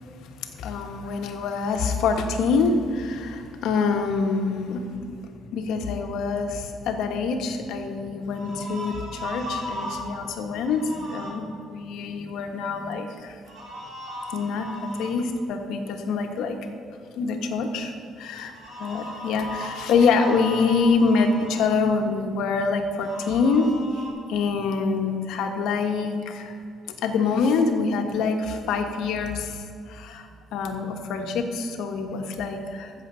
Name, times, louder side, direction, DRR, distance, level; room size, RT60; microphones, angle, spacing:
voice 1, 0.1-5.2 5.5-13.3 14.3-14.7 15.0-16.6 17.2-17.9 18.2-18.5 18.8-24.0 24.3-26.6 27.0-32.9, left 4 dB, 75° left, 4 dB, 1.3 m, -25 dB
sound 1, 8.3-10.1 10.6-11.3 13.5-15.1 18.5-21.6 23.0-24.1, equal, 50° right, 3.3 m, -37 dB
14.5 x 7.4 x 5.5 m, 2.5 s
cardioid pair, 160°, 0 cm